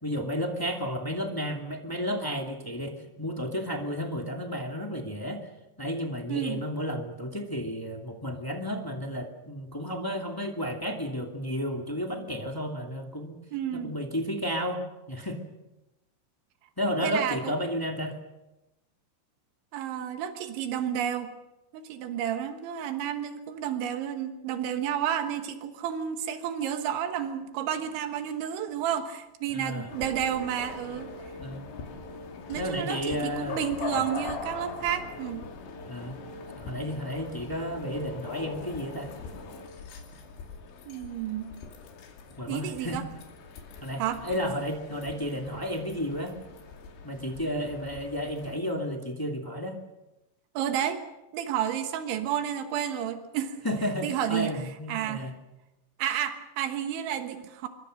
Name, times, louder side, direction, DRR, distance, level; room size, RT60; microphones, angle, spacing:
voice 1, 0.0-5.4 5.8-13.4 13.7-14.8 15.1-15.4 16.8-18.2 29.5-29.9 31.4-31.7 32.6-33.6 33.9-34.0 35.9-36.2 36.6-39.1 42.4-43.0 43.8-46.4 47.0-49.8 53.6-55.3, equal, 25° left, 2 dB, 0.4 m, -32 dB
voice 2, 6.3-6.7 13.5-14.0 17.0-17.5 19.7-21.3 21.7-31.1 32.5-35.4 40.9-41.5 42.5-43.0 44.0-44.2 50.6-51.0 51.3-53.6 54.0-55.3 56.0-57.7, right 9 dB, 85° right, 7 dB, 3.8 m, -31 dB
sound 1, 29.9-48.6, left 4 dB, 85° left, 5.0 m, -42 dB
27.0 x 24.0 x 6.5 m, 0.99 s
omnidirectional pair, 5.2 m